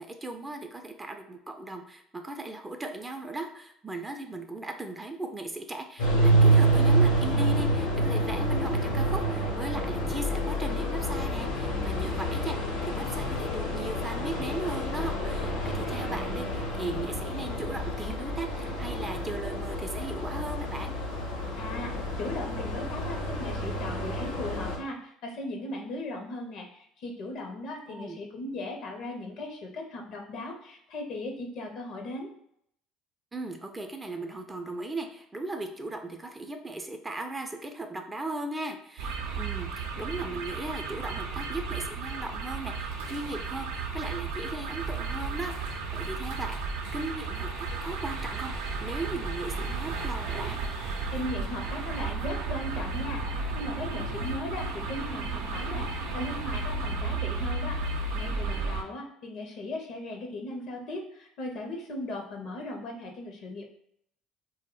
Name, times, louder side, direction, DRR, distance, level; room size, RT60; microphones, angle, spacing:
voice 1, 0.0-21.0 27.9-28.2 33.3-48.5 48.8-50.6, right 2 dB, 20° right, 5 dB, 0.4 m, -37 dB
sound 1, 6.0-24.8, right 1 dB, 90° left, 0.8 m, -28 dB
voice 2, 21.6-32.3 51.1-63.7, left 2 dB, 60° left, 2 dB, 0.5 m, -38 dB
sound 2, 39.0-58.8, right 3 dB, 80° right, 0.5 m, -33 dB
2.0 x 2.0 x 3.7 m, 0.72 s
hypercardioid pair, 70°, 0 cm